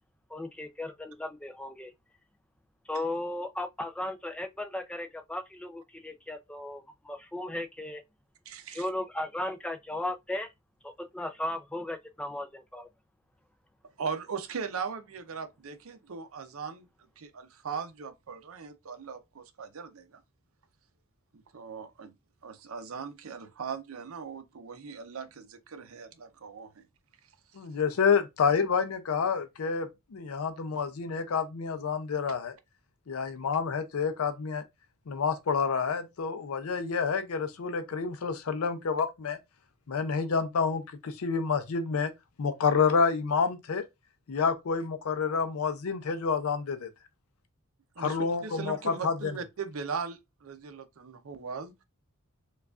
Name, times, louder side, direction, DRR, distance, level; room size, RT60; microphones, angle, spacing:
voice 1, 0.3-1.9 2.9-8.0 8.7-10.5 10.8-12.9, left 1 dB, 5° left, 0.3 m, -36 dB
voice 2, 8.5-8.9 14.0-16.9 17.2-20.2 21.5-22.1 22.4-26.8 48.0-51.8, right 5 dB, 70° right, 0.6 m, -39 dB
voice 3, 27.6-32.5 33.1-34.6 35.1-39.4 39.9-42.1 42.4-43.8 44.3-46.9 48.0-49.3, left 5 dB, 80° left, 0.5 m, -28 dB
4.7 x 2.3 x 2.3 m
head